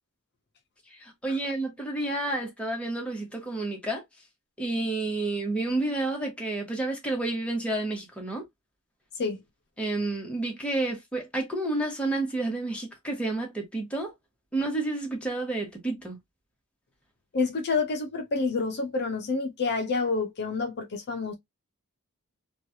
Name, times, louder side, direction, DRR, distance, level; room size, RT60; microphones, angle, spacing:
voice 1, 0.9-4.0 4.6-8.4 9.8-14.1 14.5-16.2, right 2 dB, 5° left, 1.0 m, -30 dB
voice 2, 17.3-21.3, left 4 dB, 50° left, 0.5 m, -28 dB
3.1 x 2.3 x 2.7 m
head